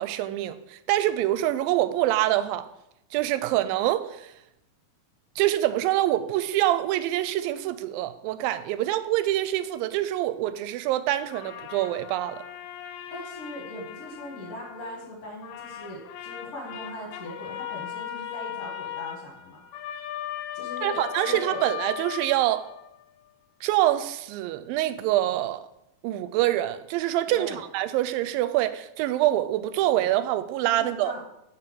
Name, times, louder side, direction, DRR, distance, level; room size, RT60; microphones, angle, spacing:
voice 1, 0.0-2.7 3.1-4.3 5.4-12.4 20.8-22.7 23.6-25.7 26.0-31.1, right 14 dB, 90° right, 2.3 m, -25 dB
sound 1, 11.3-15.1 15.4-23.0, left 11 dB, 85° left, 2.3 m, -38 dB
voice 2, 13.1-19.6 20.5-21.6 27.3-27.6 30.7-31.2, left 1 dB, 55° left, 2.2 m, -40 dB
6.8 x 4.9 x 6.2 m
omnidirectional pair, 4.0 m